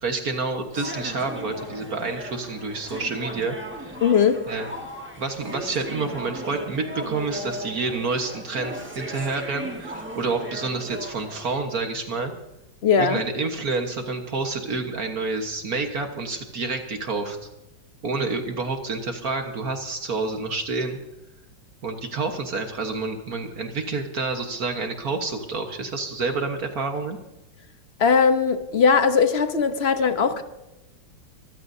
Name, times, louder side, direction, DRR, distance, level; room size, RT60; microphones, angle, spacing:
voice 1, 0.0-4.0 4.5-4.7 5.2-12.3 12.9-17.4 18.0-21.0 21.8-27.2, right 3 dB, 55° right, 5 dB, 1.8 m, -28 dB
sound 1, 0.7-11.6, equal, 5° right, 1.6 m, -37 dB
voice 2, 4.0-4.4 12.8-13.2 28.0-30.4, left 6 dB, 40° left, 9 dB, 1.1 m, -19 dB
24.5 x 15.5 x 2.7 m, 0.94 s
omnidirectional pair, 1.9 m